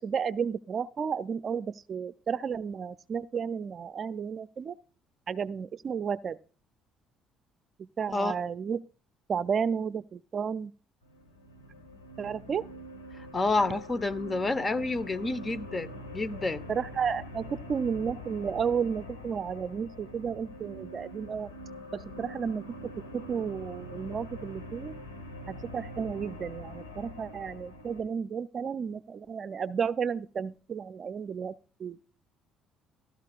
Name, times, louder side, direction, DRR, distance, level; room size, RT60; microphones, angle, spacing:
voice 1, 0.0-4.8 5.3-6.4 7.8-8.8 9.3-10.7 12.2-12.7 16.7-21.5 21.9-22.6 23.1-24.9 25.5-32.0, right 6 dB, 45° right, 0.5 m, -32 dB
sound 1, 11.0-28.0, equal, 90° left, 1.9 m, -44 dB
voice 2, 13.1-16.6, left 3 dB, 30° left, 1.1 m, -29 dB
15.0 x 12.5 x 2.5 m
hypercardioid pair, 50°, 0 cm